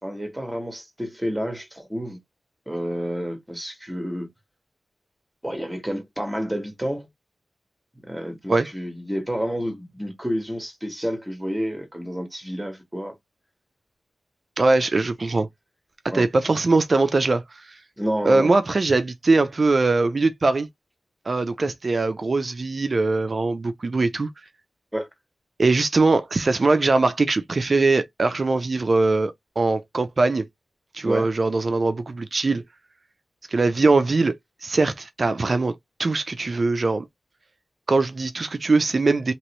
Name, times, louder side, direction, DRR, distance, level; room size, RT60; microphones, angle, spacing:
voice 1, 0.0-2.2 2.7-4.3 5.4-7.1 8.1-13.1 16.1-16.2 18.0-18.5 24.9-25.1 31.0-31.3, equal, 10° right, 1.4 m, -29 dB
voice 2, 14.6-15.5 16.0-17.8 18.2-20.7 21.3-24.3 25.6-30.4 30.9-32.6 33.5-34.3 34.6-37.1 37.9-39.3, right 3 dB, 50° right, 0.5 m, -21 dB
3.0 x 2.9 x 3.0 m
wide cardioid pair, 80°, 0 cm